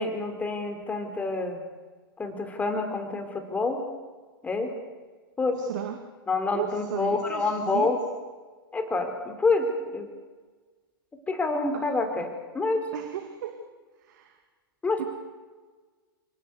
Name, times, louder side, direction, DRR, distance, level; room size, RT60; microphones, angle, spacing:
voice 1, 0.0-1.6 2.2-3.8 4.4-4.7 5.4-5.6 6.3-8.0 8.7-10.1 11.3-12.9 14.8-15.1, left 3 dB, 10° left, 6 dB, 4.5 m, -27 dB
voice 2, 5.6-6.1 6.5-7.9 11.7-11.8 12.9-13.6 14.0-14.4 15.0-15.1, right 10 dB, 50° right, 6 dB, 2.5 m, -35 dB
29.0 x 18.5 x 8.4 m, 1.4 s
figure-of-eight pair, 105°, 12 cm